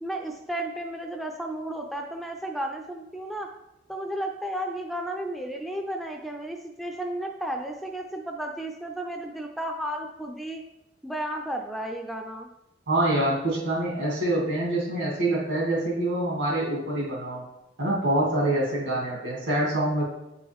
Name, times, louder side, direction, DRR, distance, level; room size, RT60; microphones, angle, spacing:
voice 1, 0.0-3.5 3.9-10.6 11.0-12.5, right 1 dB, ahead, 2 dB, 0.4 m, -33 dB
voice 2, 12.9-17.4 17.8-20.0, right 1 dB, 70° right, -4 dB, 2.7 m, -25 dB
8.3 x 4.6 x 3.6 m, 0.89 s
head